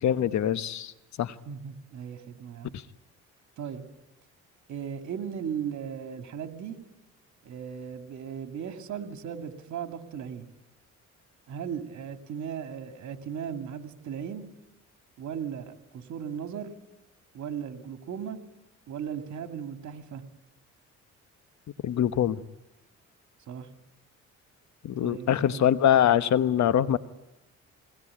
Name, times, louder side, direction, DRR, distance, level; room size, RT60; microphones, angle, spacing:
voice 1, 0.0-0.9 1.2-1.3 21.8-22.4 24.8-27.0, left 10 dB, 65° left, 13 dB, 1.1 m, -23 dB
voice 2, 1.5-2.8 3.6-3.8 4.7-6.8 7.4-10.5 11.5-14.5 15.2-16.7 17.3-18.4 18.9-20.2 23.5-23.7 25.0-25.7, right 8 dB, 70° right, 6 dB, 2.5 m, -37 dB
22.0 x 19.0 x 9.9 m, 0.94 s
cardioid pair, 90°, 30 cm